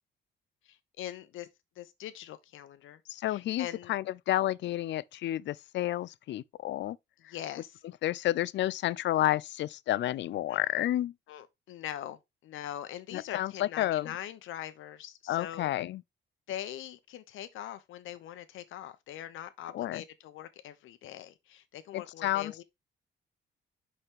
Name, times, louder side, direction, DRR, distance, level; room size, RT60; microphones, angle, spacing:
voice 1, 0.6-1.5 1.8-3.0 3.3-3.9 7.3-7.8 10.5-10.6 11.3-15.7 16.5-22.6, left 11 dB, 80° left, 0.9 m, -42 dB
voice 2, 3.1-7.0 7.2-7.3 8.0-11.1 13.1-14.1 15.3-16.0 19.7-20.0 21.9-22.6, left 14 dB, 65° left, 0.4 m, -30 dB
5.6 x 5.4 x 3.6 m
cardioid pair, 90°, 20 cm